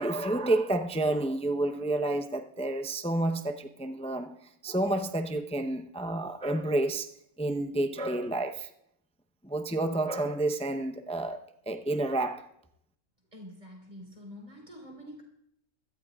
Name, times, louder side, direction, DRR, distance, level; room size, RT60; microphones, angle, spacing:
voice 1, 0.0-7.1 7.4-8.7 9.4-12.5, right 2 dB, 10° left, 0.3 m, -30 dB
voice 2, 13.3-15.2, equal, 25° right, 4.4 m, -46 dB
23.5 x 14.0 x 2.4 m
omnidirectional pair, 1.6 m